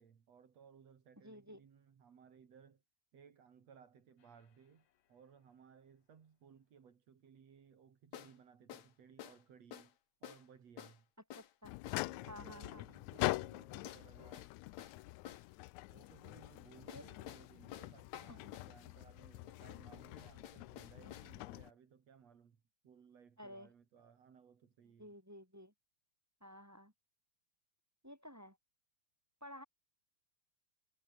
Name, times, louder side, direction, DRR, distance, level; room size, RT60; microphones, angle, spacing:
voice 1, 0.0-2.8 3.1-11.1 12.0-14.5 15.9-22.6 22.8-25.2, right 7 dB, 55° right, 3.6 m, -62 dB
voice 2, 1.2-1.6 11.3-11.8 12.3-12.9 16.9-17.0 18.3-18.4 23.4-23.7 25.0-25.7 26.4-26.9 28.0-28.6 29.4-29.6, equal, 5° right, 4.1 m, -53 dB
sound 1, 4.2-4.3 8.1-8.4 8.7-8.9 9.2-9.4 9.7-9.9 10.2-10.5 10.8-11.0 11.3-11.5 11.9-12.1 13.2-13.4 13.9-15.5 16.9-18.7 19.5-21.3, left 11 dB, 65° left, 2.5 m, -52 dB
sound 2, 11.6-21.7, left 20 dB, 80° left, 1.7 m, -44 dB
omnidirectional pair, 3.7 m